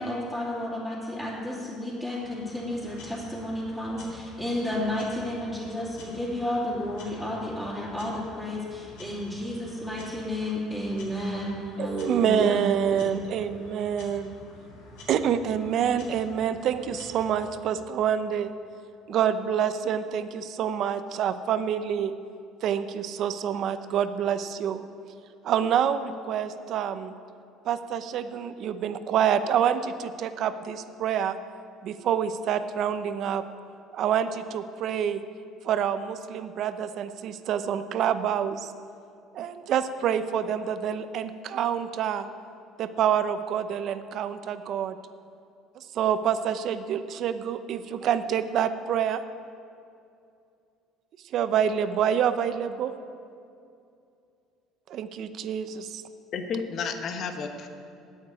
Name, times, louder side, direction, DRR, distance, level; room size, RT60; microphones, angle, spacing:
voice 1, 0.0-12.6 12.9-13.0, left 1 dB, 10° left, -10 dB, 3.0 m, -32 dB
sound 1, 2.2-17.4, left 1 dB, 80° left, 3.6 m, -48 dB
voice 2, 11.8-14.3 15.1-18.5 19.1-22.1 22.6-24.9 25.4-27.2 27.6-31.4 31.8-33.4 33.9-35.2 35.6-38.7 39.3-42.3 42.8-45.0 45.8-49.2 51.3-53.0 54.9-56.0, right 8 dB, 55° right, 11 dB, 0.7 m, -27 dB
voice 3, 56.3-57.7, left 5 dB, 50° left, 6 dB, 1.1 m, -32 dB
9.5 x 8.6 x 9.5 m, 2.5 s
cardioid pair, 120°, 0 cm